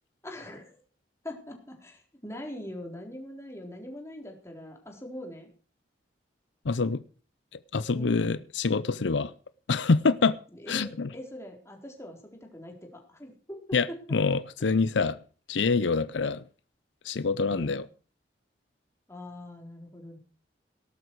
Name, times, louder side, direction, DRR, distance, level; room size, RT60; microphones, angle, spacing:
voice 1, 0.2-0.8 1.2-5.5 7.9-8.4 10.6-13.6 17.5-17.8 19.1-20.2, left 1 dB, 15° left, 1 dB, 4.0 m, -42 dB
voice 2, 6.6-7.0 7.5-9.3 9.7-10.4 10.7-11.1 13.7-15.2 15.5-16.4 17.0-17.9, left 4 dB, 80° left, 15 dB, 0.6 m, -26 dB
18.0 x 12.5 x 4.7 m, 0.39 s
head